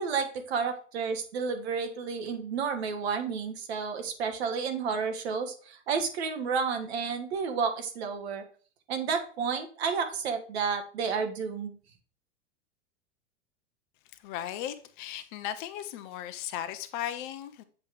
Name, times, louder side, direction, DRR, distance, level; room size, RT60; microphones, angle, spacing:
voice 1, 0.0-8.4 8.9-11.8, right 5 dB, 60° right, 1.3 m, -31 dB
voice 2, 14.2-17.6, left 11 dB, 45° left, 0.7 m, -36 dB
7.4 x 3.0 x 4.8 m
figure-of-eight pair, 95°, 35 cm